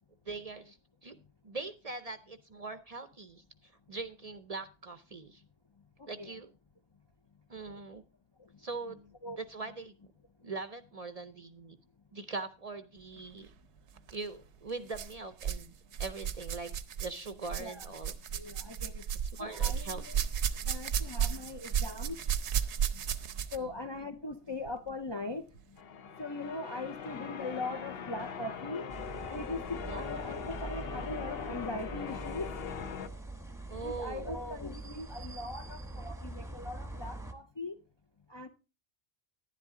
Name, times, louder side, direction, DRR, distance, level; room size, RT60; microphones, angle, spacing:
voice 1, 0.3-0.8 1.0-1.2 1.4-5.4 6.1-6.5 7.5-8.0 8.6-9.9 10.4-11.8 12.1-13.5 14.1-15.7 16.0-16.7 17.0-18.2 19.3-20.2 29.9-30.0 33.7-34.4, right 3 dB, 40° right, 0.6 m, -42 dB
voice 2, 6.0-6.3 9.2-9.4 17.6-17.9 18.3-19.0 19.4-20.2 20.7-22.2 23.5-25.4 26.2-28.9 29.3-32.5 33.8-37.8 38.3-38.5, left 2 dB, 35° left, 0.5 m, -40 dB
sound 1, 14.0-14.2 14.9-15.7 15.9-23.7 24.7-24.8 25.5-25.6, right 8 dB, 75° right, 1.0 m, -34 dB
Church bell, 25.8-33.1, left 6 dB, 60° left, 1.0 m, -41 dB
sound 2, 28.9-37.3, right 2 dB, 5° right, 1.0 m, -44 dB
11.0 x 10.5 x 3.7 m
omnidirectional pair, 1.2 m